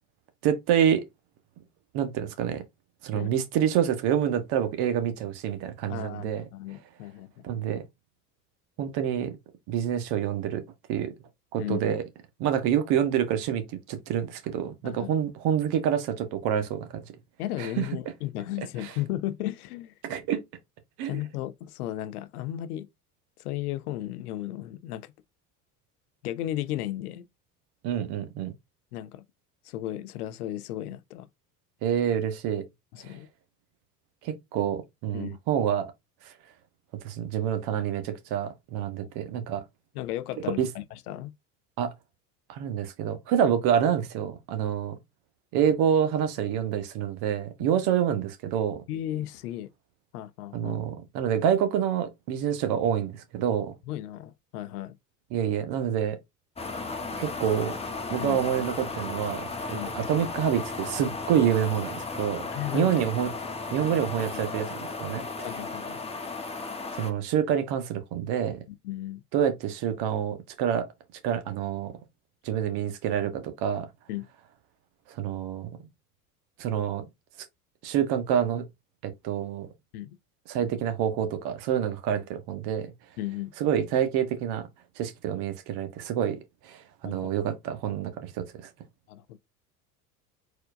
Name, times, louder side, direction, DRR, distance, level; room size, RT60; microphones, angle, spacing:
voice 1, 0.4-1.0 1.9-2.6 3.0-6.4 7.4-7.8 8.8-9.3 9.7-10.6 10.9-11.1 11.5-12.0 12.4-16.9 17.6-17.9 18.8-18.9 20.0-20.4 21.0-21.2 27.8-28.5 31.8-32.6 34.2-35.9 37.0-39.6 40.6-40.7 41.8-41.9 42.5-44.9 45.5-48.8 50.5-53.7 55.3-56.2 57.2-57.8 58.1-62.5 62.7-63.3 63.7-65.2 67.0-68.6 69.3-70.9 71.2-71.9 72.4-73.9 75.2-75.7 76.6-77.0 77.8-78.6 79.0-79.7 80.5-82.9 83.6-84.7 85.0-86.4 86.6-88.4, right 9 dB, 55° right, 1.4 m, -27 dB
voice 2, 5.9-7.4 11.6-11.9 14.8-15.1 17.4-19.9 21.1-22.9 23.4-25.1 26.2-27.2 28.9-29.2 29.6-31.3 32.9-33.3 35.1-35.4 39.9-41.3 47.7-47.8 48.9-49.7 50.1-50.8 53.9-54.9 58.2-58.4 59.7-59.9 62.5-63.0 64.2-64.4 65.4-66.0 68.8-69.2 74.1-74.3 79.9-80.2 83.2-83.5 87.0-87.3 89.1-89.4, left 14 dB, 70° left, 0.7 m, -35 dB
sound 1, 56.6-67.1, left 3 dB, 15° left, 1.1 m, -35 dB
4.4 x 4.4 x 2.6 m
hypercardioid pair, 75°, 47 cm